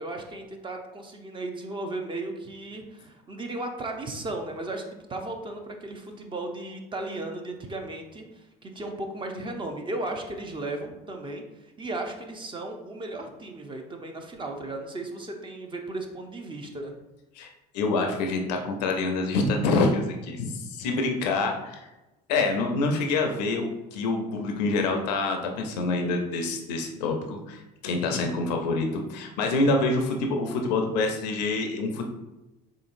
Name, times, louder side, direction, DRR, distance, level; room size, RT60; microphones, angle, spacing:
voice 1, 0.0-11.4 11.8-16.9, right 2 dB, 25° right, 3 dB, 0.6 m, -35 dB
voice 2, 17.3-21.9 22.3-32.0, left 3 dB, 85° left, 3 dB, 0.5 m, -26 dB
3.8 x 3.6 x 2.5 m, 1.0 s
hypercardioid pair, 80°, 21 cm